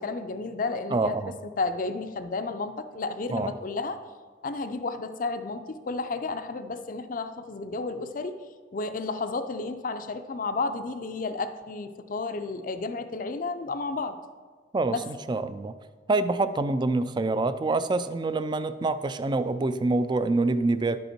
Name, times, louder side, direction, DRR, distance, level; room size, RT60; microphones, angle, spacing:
voice 1, 0.0-1.2 1.4-4.0 4.4-8.4 8.7-14.2 14.9-15.1, left 3 dB, 45° left, 9 dB, 0.5 m, -32 dB
voice 2, 0.9-1.3 3.3-3.5 14.7-15.7 16.1-21.1, right 3 dB, 25° right, 13 dB, 0.3 m, -26 dB
11.0 x 5.4 x 4.4 m, 1.5 s
head